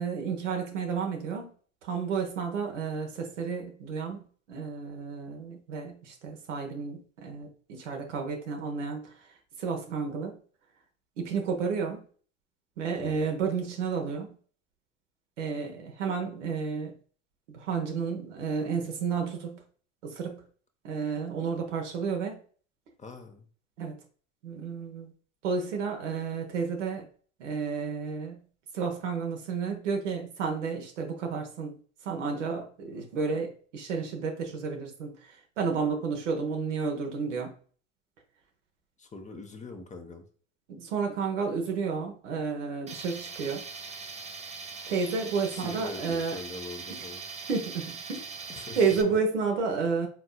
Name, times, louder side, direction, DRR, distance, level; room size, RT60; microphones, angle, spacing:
voice 1, 0.0-1.5 1.8-9.0 9.6-10.4 11.2-12.0 12.8-14.3 15.4-16.9 17.5-19.6 20.0-20.4 20.8-22.4 23.8-24.0 24.4-25.1 25.4-27.1 27.4-28.4 28.7-31.7 32.0-37.5 40.7-43.6 44.9-46.4 47.5-48.2 48.7-50.1, right 5 dB, 90° right, 3 dB, 1.1 m, -31 dB
voice 2, 12.9-13.2 23.0-23.5 39.0-40.2 45.5-47.2 48.5-48.8, left 3 dB, 20° left, 5 dB, 0.8 m, -42 dB
Tools, 42.9-49.0, right 4 dB, 20° right, 0.5 m, -41 dB
4.5 x 3.8 x 2.2 m, 0.43 s
hypercardioid pair, 80°, 35 cm